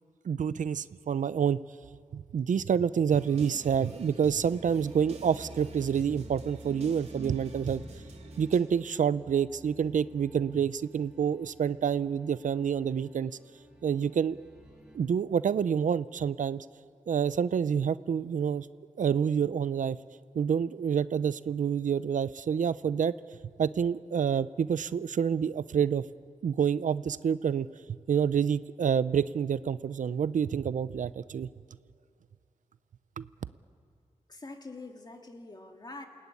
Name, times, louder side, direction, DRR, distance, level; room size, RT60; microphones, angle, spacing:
voice 1, 0.2-1.6 2.1-7.8 8.4-13.3 13.8-14.4 14.9-16.7 17.1-18.7 19.0-20.0 20.3-23.2 23.6-26.0 26.4-27.7 28.1-31.5 33.2-33.3, right 7 dB, 90° right, 16 dB, 0.6 m, -28 dB
sound 1, 3.1-8.6, right 2 dB, 55° right, 3.2 m, -46 dB
sound 2, 4.4-15.0, right 1 dB, 5° right, 6.1 m, -52 dB
voice 2, 34.3-36.1, left 3 dB, 30° left, 4 dB, 2.2 m, -45 dB
28.5 x 17.5 x 9.7 m, 2.5 s
wide cardioid pair, 160°, 13 cm